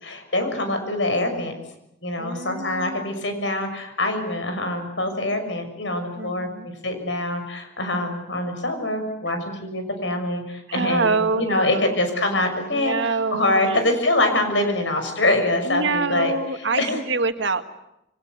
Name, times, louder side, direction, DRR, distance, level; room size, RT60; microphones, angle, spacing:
voice 1, 0.0-1.5 2.0-17.0, left 1 dB, 75° left, 6 dB, 6.4 m, -24 dB
voice 2, 2.2-3.0 6.2-6.7 10.7-12.0 12.7-13.6 15.7-17.6, right 3 dB, 75° right, 9 dB, 1.9 m, -26 dB
28.0 x 24.5 x 8.2 m, 0.84 s
head